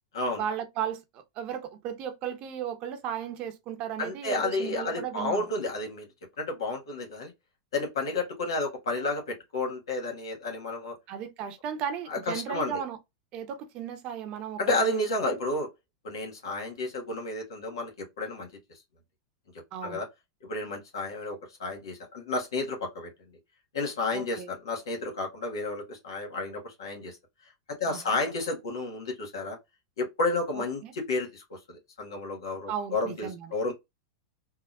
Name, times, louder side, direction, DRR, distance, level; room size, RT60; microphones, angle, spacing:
voice 1, 0.4-5.5 11.1-13.0 13.3-15.4 19.7-20.0 24.1-24.5 27.9-28.2 30.8-30.9 32.7-33.4, right 8 dB, 45° right, 0.8 m, -35 dB
voice 2, 4.0-6.1 6.4-7.3 7.7-10.9 12.1-12.8 14.6-15.7 16.0-18.5 19.8-20.1 20.4-23.1 23.7-27.2 27.4-27.5 27.8-29.6 30.0-33.7, left 2 dB, 80° left, 1.5 m, -31 dB
3.6 x 2.2 x 2.3 m
hypercardioid pair, 110°, 2 cm